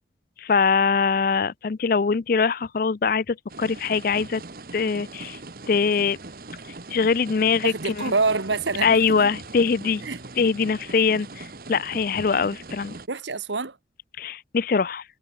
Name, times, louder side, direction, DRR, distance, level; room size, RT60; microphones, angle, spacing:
voice 1, 0.4-4.4 4.7-5.4 5.7-6.2 6.9-8.0 8.8-10.0 10.4-13.0 14.2-15.0, left 5 dB, 50° left, 0.4 m, -22 dB
sound 1, 3.5-13.1, right 2 dB, 50° right, 1.4 m, -40 dB
voice 2, 7.6-9.3 10.0-10.2 13.1-13.8, right 3 dB, 85° right, 1.6 m, -26 dB
head